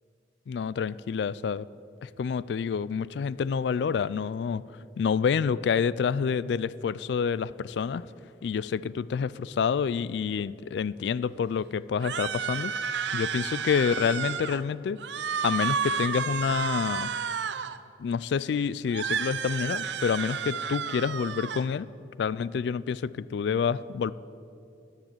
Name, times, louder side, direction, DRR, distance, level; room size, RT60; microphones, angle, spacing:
voice 1, 0.5-1.7 2.0-4.6 5.0-8.1 8.4-15.0 15.4-17.1 18.0-21.9 22.2-24.1, left 6 dB, 70° left, 19 dB, 0.3 m, -28 dB
sound 1, 12.0-14.6 15.0-17.8 18.9-21.6, right 7 dB, 80° right, 0.6 m, -31 dB
13.0 x 7.5 x 8.9 m, 2.6 s
head